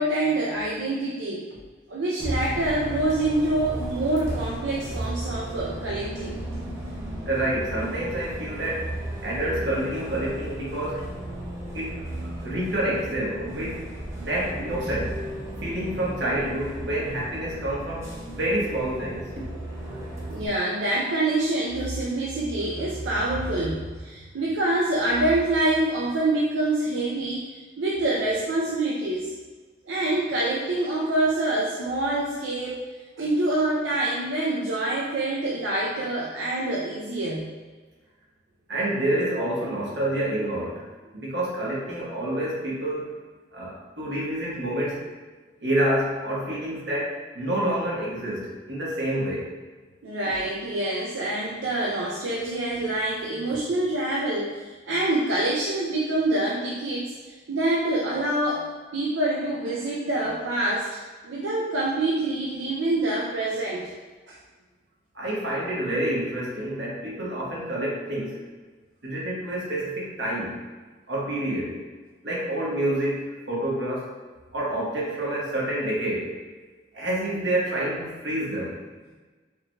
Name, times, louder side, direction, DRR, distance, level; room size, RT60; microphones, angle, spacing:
voice 1, 0.0-1.5 1.9-6.4 20.3-29.3 29.8-32.8 33.2-37.5 50.0-63.9 64.3-64.4, right 2 dB, 85° right, -4 dB, 0.5 m, -26 dB
Bus, 2.2-20.5, right 1 dB, 15° right, 0.7 m, -35 dB
voice 2, 7.2-8.9 9.2-11.1 11.7-12.0 12.4-13.8 14.2-15.2 15.6-19.5 38.7-40.9 41.1-43.1 43.5-45.0 45.6-49.5 65.1-68.4 69.0-70.6 71.1-71.8 72.2-74.1 74.5-76.4 76.9-78.7, right 1 dB, 70° right, -5 dB, 1.1 m, -28 dB
4.8 x 3.1 x 2.3 m, 1.3 s
head